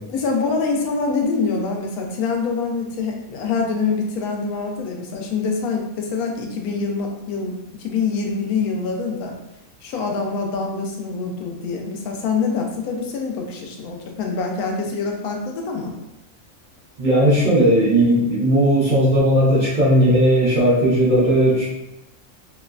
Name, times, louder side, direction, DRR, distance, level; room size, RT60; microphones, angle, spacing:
voice 1, 0.1-9.3 9.8-16.0, left 4 dB, 90° left, 1 dB, 1.1 m, -25 dB
voice 2, 17.0-21.7, right 1 dB, 40° right, -9 dB, 0.7 m, -16 dB
3.1 x 2.0 x 2.3 m, 0.89 s
omnidirectional pair, 1.5 m